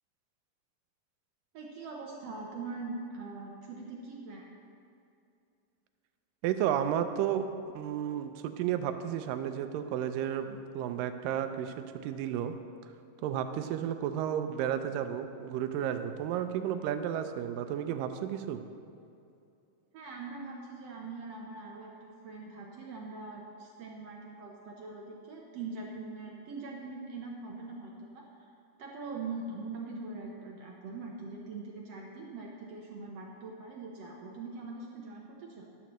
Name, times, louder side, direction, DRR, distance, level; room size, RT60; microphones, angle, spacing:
voice 1, 1.5-4.4 19.9-28.5 28.8-35.7, right 3 dB, 70° right, -1 dB, 1.6 m, -42 dB
voice 2, 6.4-7.5 7.7-12.5 13.2-18.6, right 10 dB, 85° right, 8 dB, 2.3 m, -32 dB
13.5 x 11.0 x 3.1 m, 2.6 s
omnidirectional pair, 3.9 m